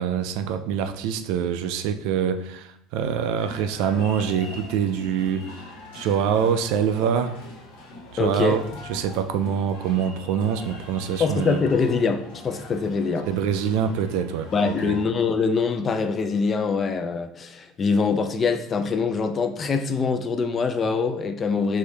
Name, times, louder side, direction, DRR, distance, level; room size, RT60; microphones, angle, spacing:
voice 1, 0.0-5.5 5.9-7.3 8.1-8.6 8.9-11.6 13.3-15.0, right 8 dB, 65° right, 9 dB, 0.3 m, -25 dB
sound 1, 3.4-15.0, left 2 dB, 85° left, 1.5 m, -42 dB
voice 2, 8.2-8.6 11.2-13.3 14.5-21.8, left 5 dB, 25° left, 8 dB, 0.3 m, -24 dB
4.9 x 2.6 x 3.3 m, 0.74 s
cardioid pair, 150°, 0 cm